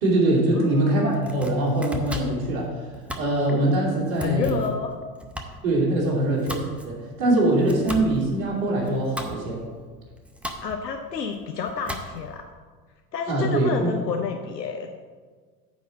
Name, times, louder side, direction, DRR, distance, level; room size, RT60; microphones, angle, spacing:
voice 1, 0.0-4.6 5.6-9.6 13.3-13.9, right 1 dB, 50° right, -4 dB, 2.7 m, -23 dB
voice 2, 0.5-1.2 4.2-4.9 10.6-12.4 13.1-14.9, left 6 dB, 80° left, 4 dB, 0.7 m, -29 dB
Domestic sounds home sounds, 1.0-12.4, equal, 5° right, 0.6 m, -38 dB
9.6 x 4.0 x 7.0 m, 1.5 s
figure-of-eight pair, 75°, 49 cm